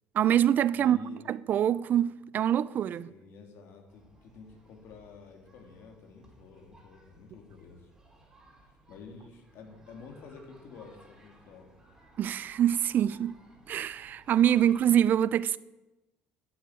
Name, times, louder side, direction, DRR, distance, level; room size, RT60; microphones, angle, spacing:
voice 1, 0.1-1.0 1.3-3.1 12.2-13.4 13.7-15.6, right 10 dB, 45° right, 0.5 m, -25 dB
voice 2, 0.7-1.2 3.0-7.9 8.9-11.7, left 4 dB, 65° left, 3.1 m, -50 dB
sound 1, 3.9-14.9, right 1 dB, 10° right, 3.7 m, -59 dB
11.5 x 7.8 x 8.9 m
cardioid pair, 115°, 4 cm